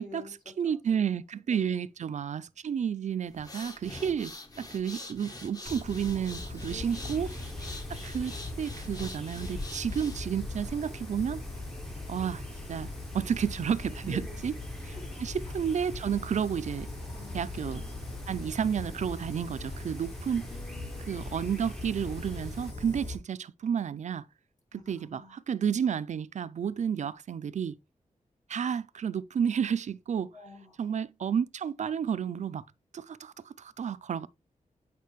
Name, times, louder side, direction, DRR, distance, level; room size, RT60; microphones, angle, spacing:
voice 1, 0.0-0.8 1.5-1.7 6.7-7.5 14.0-14.4 14.8-15.1 17.1-18.0 20.5-21.3 24.7-25.4 30.3-30.8, left 3 dB, 65° left, 3.3 m, -49 dB
voice 2, 0.6-7.3 8.0-11.4 12.1-12.4 12.7-12.9 13.1-14.5 14.8-16.9 17.3-17.8 18.3-20.5 21.1-24.2 24.7-27.8 28.5-30.3 30.8-32.6 32.9-34.3, right 8 dB, 60° right, 0.4 m, -31 dB
sound 1, 3.3-10.4, left 2 dB, 30° left, 0.9 m, -45 dB
Fire, 5.7-23.2, left 2 dB, 45° left, 3.8 m, -39 dB
sound 2, 6.8-22.7, equal, ahead, 0.6 m, -53 dB
8.4 x 4.9 x 3.1 m
wide cardioid pair, 155°, 14 cm